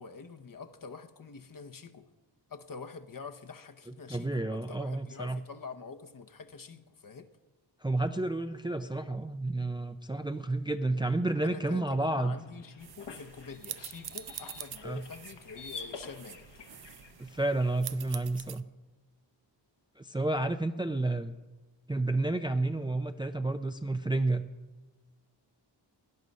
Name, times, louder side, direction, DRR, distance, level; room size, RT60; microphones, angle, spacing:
voice 1, 0.0-2.1 2.5-7.3 11.4-16.5, left 5 dB, 50° left, 7 dB, 1.0 m, -46 dB
voice 2, 4.1-5.4 7.8-12.4 14.8-15.0 17.2-18.6 20.0-21.4 21.9-24.4, right 2 dB, 10° right, 8 dB, 0.4 m, -30 dB
sound 1, 12.3-17.8, left 5 dB, 65° left, 1.3 m, -48 dB
sound 2, 12.8-18.6, right 10 dB, 60° right, 0.6 m, -45 dB
17.5 x 11.0 x 5.4 m, 1.2 s
wide cardioid pair, 105°, 44 cm